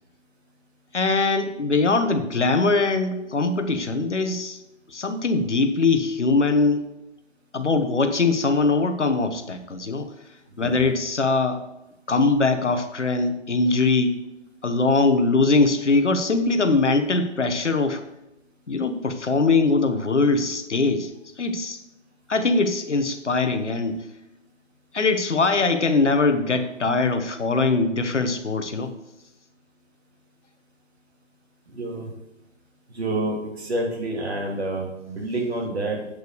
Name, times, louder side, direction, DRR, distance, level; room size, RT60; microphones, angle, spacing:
voice 1, 0.9-4.6 4.9-6.9 7.5-10.1 10.6-11.6 12.1-14.2 14.6-18.0 18.7-21.1 21.4-21.8 22.3-24.0 24.9-28.9, left 3 dB, 70° left, 8 dB, 1.2 m, -22 dB
voice 2, 10.5-10.9 31.7-32.1 32.9-36.1, right 2 dB, 60° right, -1 dB, 3.1 m, -28 dB
8.1 x 6.6 x 6.4 m, 0.93 s
figure-of-eight pair, 145°, 37 cm